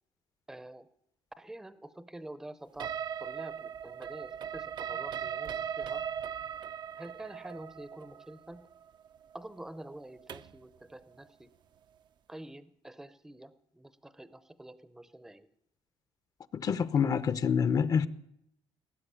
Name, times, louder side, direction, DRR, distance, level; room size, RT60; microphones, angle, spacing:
voice 1, 0.5-0.9 1.4-6.0 7.0-8.7 9.3-11.5 12.3-15.5, right 1 dB, 5° right, 0.6 m, -47 dB
sound 1, 2.8-10.6, right 8 dB, 50° right, 0.5 m, -39 dB
voice 2, 16.5-18.1, left 7 dB, 40° left, 0.7 m, -27 dB
18.5 x 7.7 x 9.8 m
cardioid pair, 135°, 10 cm